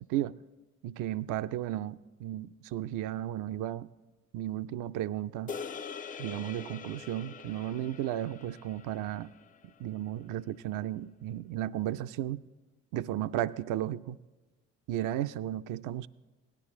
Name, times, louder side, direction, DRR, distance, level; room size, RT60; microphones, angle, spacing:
voice 1, 0.8-3.9 4.3-5.5 6.2-9.3 9.8-12.4 12.9-14.2 14.9-16.1, right 12 dB, 55° right, 14 dB, 0.5 m, -34 dB
sound 1, 5.5-9.9, left 6 dB, 25° left, 0.4 m, -44 dB
18.0 x 11.0 x 3.6 m, 1.3 s
hypercardioid pair, 50°, 37 cm